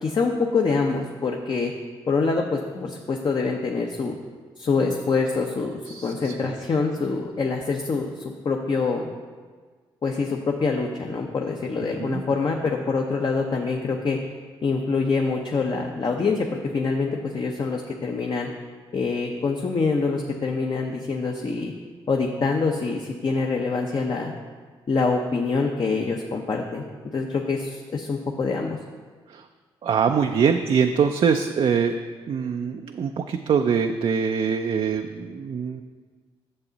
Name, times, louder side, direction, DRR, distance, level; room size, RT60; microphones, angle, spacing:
voice 1, 0.0-1.7 2.1-4.2 4.6-8.1 8.4-9.1 10.0-14.2 14.6-18.5 18.9-21.7 22.1-24.3 24.9-26.8 27.1-28.8, left 4 dB, 45° left, 1 dB, 0.7 m, -25 dB
voice 2, 5.9-6.5 12.0-12.2 29.3-29.4 29.8-31.9 32.3-35.8, right 6 dB, 55° right, 6 dB, 0.4 m, -23 dB
8.7 x 6.8 x 4.0 m, 1.5 s
cardioid pair, 65°, 11 cm